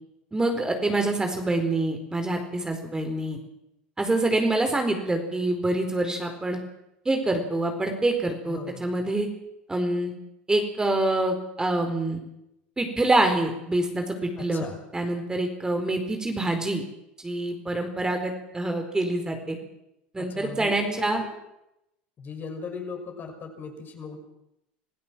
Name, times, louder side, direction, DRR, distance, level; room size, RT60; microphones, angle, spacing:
voice 1, 0.3-3.4 4.0-6.6 7.0-9.3 9.7-10.1 10.5-12.2 12.8-14.7 14.9-16.8 17.2-19.6 20.1-21.2, right 2 dB, 15° right, 5 dB, 4.4 m, -26 dB
voice 2, 8.5-8.9 14.4-14.8 20.2-21.3 22.2-24.2, left 5 dB, 35° left, 4 dB, 6.1 m, -38 dB
26.0 x 16.0 x 7.6 m, 0.85 s
hypercardioid pair, 90°, 6 cm